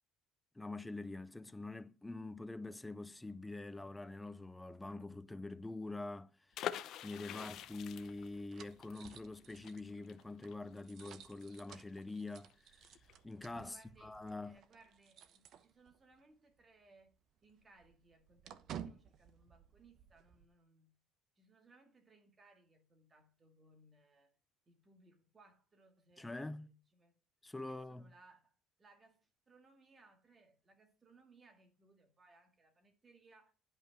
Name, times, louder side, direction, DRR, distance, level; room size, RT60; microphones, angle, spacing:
voice 1, 0.6-6.3 7.0-12.8 13.2-14.6 26.2-26.7 27.4-28.1, left 2 dB, 5° left, 0.5 m, -45 dB
sound 1, 6.5-12.2 12.5-12.6 12.8-13.1, left 11 dB, 50° left, 0.8 m, -46 dB
sound 2, 7.4-16.2 16.5-16.6 17.0-20.5, right 9 dB, 50° right, 0.9 m, -55 dB
voice 2, 13.6-14.2 14.4-17.1 17.4-21.0 21.4-24.3 24.7-27.1 27.7-28.5 28.8-29.2 29.5-33.5, right 3 dB, 20° right, 2.1 m, -66 dB
11.0 x 5.4 x 6.1 m
cardioid pair, 150°, 0 cm